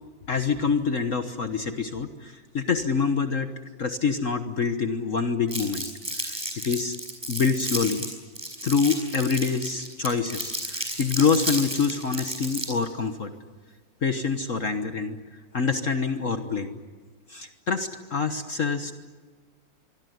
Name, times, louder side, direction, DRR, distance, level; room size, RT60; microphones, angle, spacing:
voice 1, 0.3-3.5 3.8-5.8 6.1-7.0 7.3-8.0 8.6-13.3 14.0-16.8 17.3-18.9, left 5 dB, 45° left, 8 dB, 1.4 m, -26 dB
Crumpling crinkling, 5.5-12.9, right 1 dB, 15° right, 6.1 m, -32 dB
Crash cymbal, 11.2-12.9, right 1 dB, 30° right, 5.6 m, -45 dB
25.5 x 23.0 x 9.4 m, 1.5 s
omnidirectional pair, 2.0 m